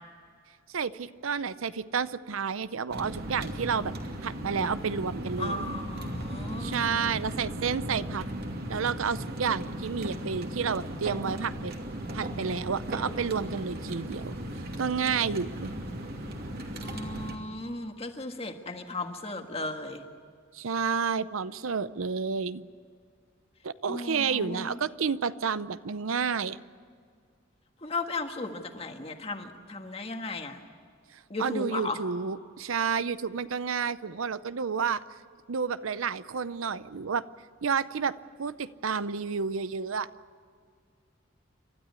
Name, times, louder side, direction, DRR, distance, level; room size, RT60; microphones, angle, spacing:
voice 1, 0.7-3.9 4.2-5.8 6.6-8.3 8.7-11.7 12.1-14.4 14.8-15.7 20.5-22.6 23.6-26.6 31.4-35.0 35.5-37.2 37.6-40.1, right 6 dB, 85° right, 15 dB, 0.7 m, -30 dB
sound 1, 2.9-17.4, right 1 dB, 50° right, 2.6 m, -36 dB
voice 2, 5.4-7.1 16.8-20.0 23.8-24.8 27.8-30.6 31.3-32.0, left 2 dB, 30° left, 5 dB, 1.6 m, -36 dB
30.0 x 13.0 x 9.7 m, 2.1 s
head